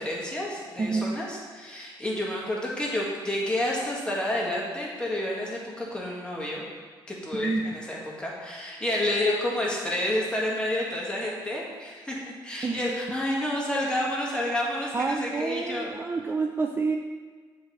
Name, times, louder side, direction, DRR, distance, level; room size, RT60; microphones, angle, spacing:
voice 1, 0.0-6.6 7.1-15.9, left 1 dB, 10° left, -4 dB, 1.8 m, -29 dB
voice 2, 0.8-1.1 7.3-7.6 12.6-12.9 14.9-17.0, right 4 dB, 25° right, 3 dB, 0.4 m, -28 dB
7.4 x 4.1 x 4.3 m, 1.5 s
cardioid pair, 85°, 9 cm